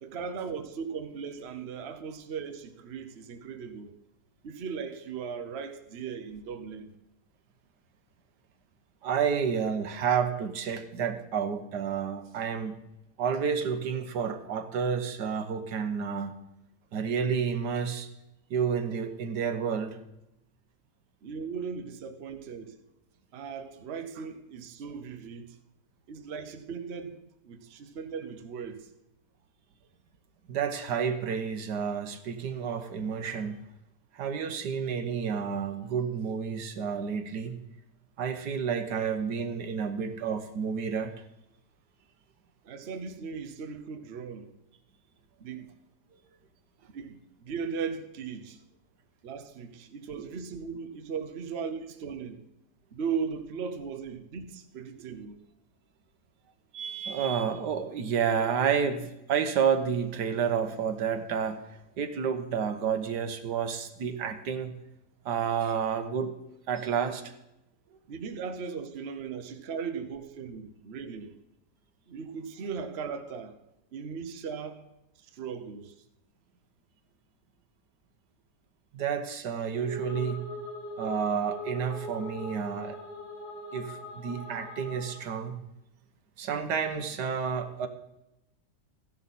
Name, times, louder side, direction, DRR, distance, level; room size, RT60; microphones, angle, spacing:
voice 1, 0.0-4.0 4.4-6.9 21.2-22.8 23.3-25.6 26.1-28.9 42.6-44.5 45.4-45.7 46.9-48.6 49.2-52.5 52.9-55.4 68.1-71.4 72.1-73.6 73.9-74.9 75.2-75.9, right 6 dB, 45° right, 1.0 m, -38 dB
voice 2, 9.0-12.8 13.2-16.3 16.9-18.1 18.5-20.0 30.5-33.6 34.1-37.6 38.2-41.1 50.2-50.3 56.7-61.6 62.0-64.8 65.2-66.3 66.7-67.2 78.9-80.4 81.0-83.0 83.7-85.6 86.4-87.9, right 7 dB, 80° right, 1.6 m, -30 dB
sound 1, 79.7-85.4, left 1 dB, 55° left, 4.3 m, -41 dB
14.5 x 10.5 x 4.1 m
omnidirectional pair, 1.8 m